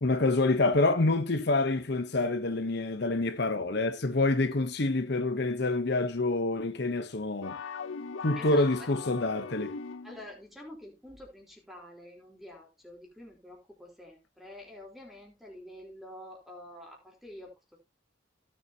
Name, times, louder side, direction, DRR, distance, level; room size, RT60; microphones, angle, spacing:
voice 1, 0.0-7.6 8.2-9.8, left 2 dB, 55° left, 0.9 m, -27 dB
sound 1, 7.4-10.3, left 5 dB, 90° left, 0.6 m, -39 dB
voice 2, 8.4-8.9 10.0-17.8, left 1 dB, ahead, 3.7 m, -48 dB
16.5 x 7.1 x 2.8 m
head